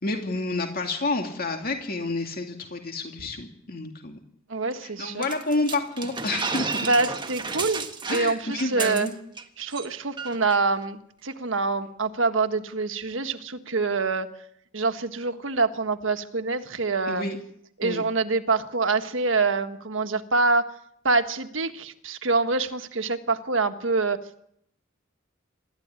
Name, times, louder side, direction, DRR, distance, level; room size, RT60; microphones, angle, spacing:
voice 1, 0.0-4.2 4.8-6.9 8.1-9.1 17.1-17.4 17.8-18.0, left 2 dB, 50° left, 3 dB, 2.5 m, -29 dB
voice 2, 4.5-5.2 6.8-9.1 9.6-14.3 14.7-17.2 17.8-20.7 21.0-24.2, right 3 dB, 70° right, 8 dB, 1.6 m, -25 dB
sound 1, 5.2-9.4 9.7-9.9 10.2-10.6, right 5 dB, 25° right, 1.5 m, -32 dB
27.0 x 13.0 x 9.8 m, 0.73 s
head